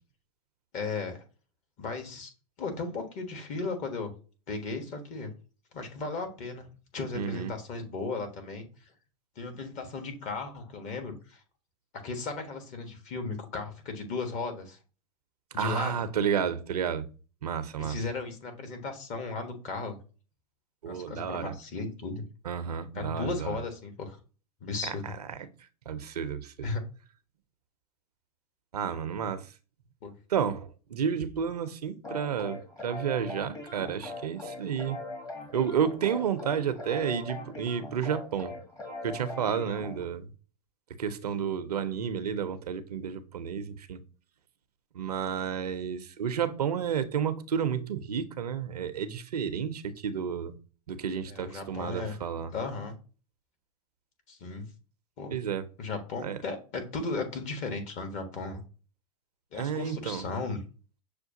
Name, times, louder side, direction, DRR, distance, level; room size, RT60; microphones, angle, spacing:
voice 1, 0.7-1.2 1.8-2.3 2.6-4.1 4.5-5.3 5.7-6.7 6.9-8.7 9.4-11.4 11.9-14.8 15.5-16.0 17.8-20.0 20.8-22.2 22.9-24.2 24.6-25.2 26.6-26.8 30.0-30.1 51.3-52.1 52.5-52.9 54.3-54.7 55.2-55.3 55.8-58.6 59.5-60.6, left 3 dB, 40° left, 1.2 m, -35 dB
voice 2, 7.1-7.5 15.6-17.0 17.4-18.0 20.8-21.5 22.4-23.6 24.8-25.4 25.9-26.7 28.7-29.5 30.3-35.0 35.5-38.5 39.0-40.3 41.0-44.0 44.9-50.5 50.9-52.5 55.3-55.7 56.2-56.4 59.6-60.3, right 8 dB, 80° right, 0.5 m, -31 dB
sound 1, 32.0-40.0, left 2 dB, 15° left, 1.0 m, -41 dB
6.4 x 2.2 x 2.7 m
hypercardioid pair, 100°, 20 cm